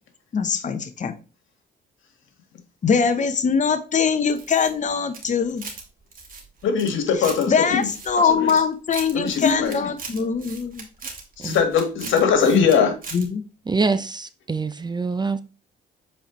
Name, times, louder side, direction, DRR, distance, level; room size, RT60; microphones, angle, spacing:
voice 1, 0.3-1.1 2.8-5.7 7.5-10.8 13.1-13.4, left 6 dB, 40° left, 0.9 m, -22 dB
sound 1, 4.3-5.8 6.1-7.4 7.8-8.6 8.9-12.8 13.0-13.2, right 4 dB, 45° right, 2.3 m, -38 dB
voice 2, 6.6-7.9 8.2-8.5 9.1-9.8 11.4-13.0, left 6 dB, 75° left, 1.8 m, -21 dB
voice 3, 13.7-15.4, right 4 dB, 20° right, 0.5 m, -25 dB
7.9 x 4.4 x 3.1 m
cardioid pair, 90°, 20 cm